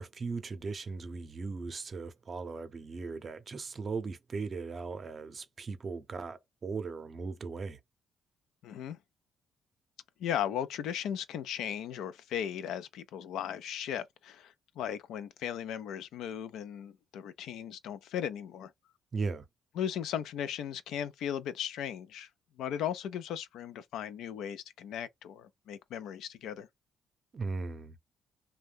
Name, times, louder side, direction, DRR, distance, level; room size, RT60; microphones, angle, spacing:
voice 1, 0.0-7.8 19.1-19.5 27.3-28.0, right 4 dB, 40° right, 0.6 m, -38 dB
voice 2, 8.6-9.0 10.2-18.7 19.8-22.3 22.6-26.7, left 9 dB, 85° left, 0.4 m, -37 dB
2.6 x 2.2 x 3.4 m
cardioid pair, 90°, 0 cm